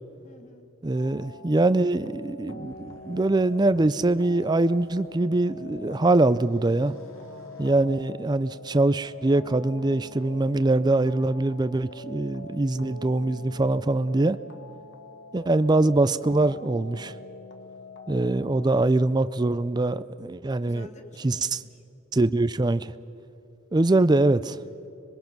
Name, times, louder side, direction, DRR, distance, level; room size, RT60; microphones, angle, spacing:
voice 1, 0.2-0.7 20.6-21.7 24.5-24.9, left 1 dB, 35° left, 6 dB, 1.6 m, -49 dB
voice 2, 0.8-6.9 7.6-14.4 15.3-17.1 18.1-20.9 21.2-21.6 22.1-22.9 23.7-24.6, right 2 dB, 20° right, 14 dB, 0.4 m, -23 dB
sound 1, 0.9-19.4, left 1 dB, 55° left, 1.6 m, -44 dB
sound 2, 2.5-5.1 5.6-8.4, left 1 dB, 80° left, 2.6 m, -53 dB
26.0 x 21.5 x 6.0 m, 2.9 s
head